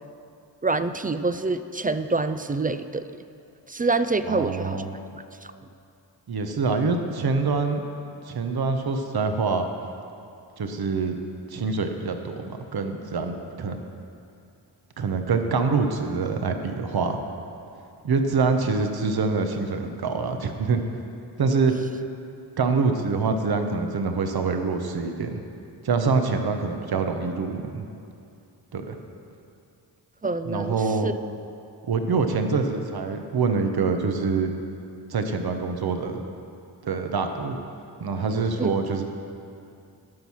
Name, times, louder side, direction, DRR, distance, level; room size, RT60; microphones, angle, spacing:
voice 1, 0.6-3.2 3.7-4.8 5.1-5.5 30.2-31.1 38.6-38.7, right 3 dB, 20° right, 11 dB, 0.4 m, -26 dB
voice 2, 4.3-4.9 6.3-7.8 8.3-9.7 10.6-11.1 11.5-13.8 15.0-17.2 18.0-20.8 21.4-21.7 22.6-25.4 25.8-27.9 28.7-29.0 30.4-31.1 31.9-34.5 35.1-36.2 36.8-37.6 38.0-39.0, right 4 dB, 55° right, 6 dB, 1.0 m, -25 dB
12.5 x 5.5 x 6.2 m, 2.6 s
cardioid pair, 45°, 44 cm